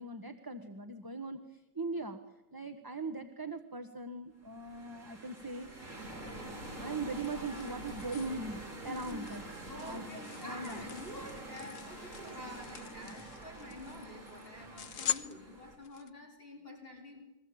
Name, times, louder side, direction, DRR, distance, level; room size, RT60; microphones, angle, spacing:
voice 1, 0.0-2.2 2.5-5.7 6.8-9.4 9.8-10.0 10.4-10.8, right 3 dB, 15° right, 7 dB, 1.1 m, -40 dB
sound 1, 4.4-15.8, right 1 dB, 45° right, 4.3 m, -46 dB
Wind, 6.2-14.3, left 2 dB, 75° left, 2.1 m, -56 dB
sound 2, 6.9-16.1, left 10 dB, 50° left, 1.4 m, -44 dB
voice 2, 8.8-9.3 9.7-17.3, left 1 dB, 30° left, 0 dB, 4.7 m, -48 dB
30.0 x 22.0 x 8.7 m, 0.99 s
omnidirectional pair, 1.8 m